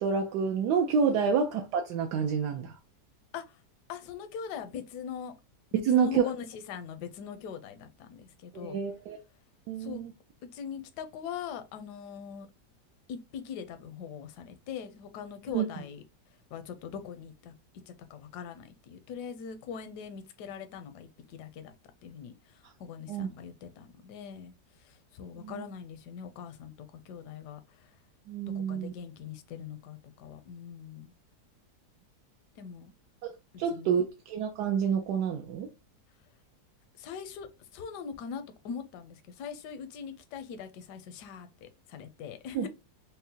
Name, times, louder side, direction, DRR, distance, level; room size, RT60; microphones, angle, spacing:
voice 1, 0.0-2.8 5.9-6.2 8.5-9.2 9.7-10.1 15.5-15.7 23.1-23.3 25.4-25.5 28.3-28.9 33.2-33.3 33.6-35.7 42.5-42.6, right 6 dB, 75° right, 1.1 m, -28 dB
voice 2, 3.9-5.3 5.7-8.8 9.8-10.0 10.5-12.5 13.1-16.0 16.5-17.5 17.9-21.7 22.0-24.5 24.8-27.9 28.5-31.1 32.6-32.9 33.7-33.9 37.0-42.7, left 7 dB, 80° left, 1.2 m, -41 dB
5.4 x 2.1 x 2.7 m
omnidirectional pair, 1.8 m